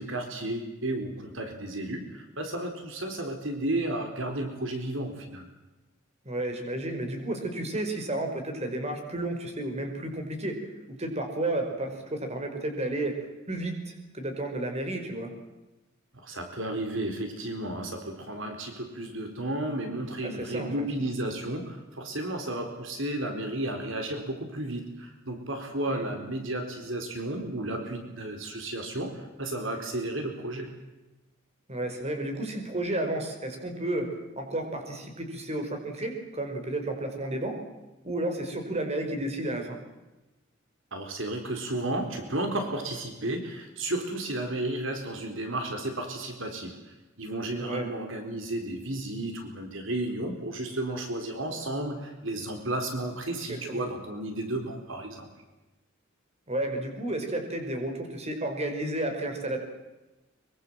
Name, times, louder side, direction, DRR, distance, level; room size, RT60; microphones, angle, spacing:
voice 1, 0.0-5.4 16.1-30.7 40.9-46.8 47.2-55.3, right 1 dB, 70° right, 5 dB, 4.3 m, -33 dB
voice 2, 6.2-10.6 10.9-13.1 13.5-15.3 20.2-20.9 25.9-26.1 31.7-34.1 34.3-37.6 38.0-39.8 47.6-47.9 53.5-53.9 56.5-59.6, right 1 dB, 35° right, 5 dB, 5.1 m, -32 dB
24.5 x 24.0 x 7.6 m, 1.1 s
head